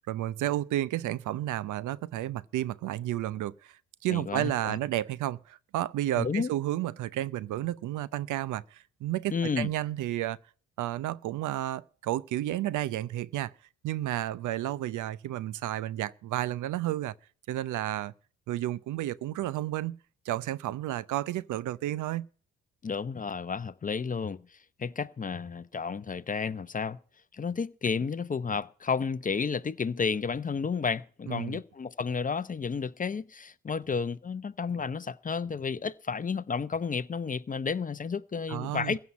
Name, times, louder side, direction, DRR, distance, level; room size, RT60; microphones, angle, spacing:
voice 1, 0.1-10.4 10.8-13.5 13.8-17.1 17.5-18.1 18.5-20.0 20.2-22.3 31.3-31.6 38.5-39.0, right 14 dB, 80° right, 0.7 m, -32 dB
voice 2, 4.1-4.8 6.2-6.5 9.3-9.7 22.8-27.0 27.3-39.0, left 5 dB, 25° left, 0.7 m, -32 dB
15.5 x 5.7 x 9.5 m
cardioid pair, 90°, 30 cm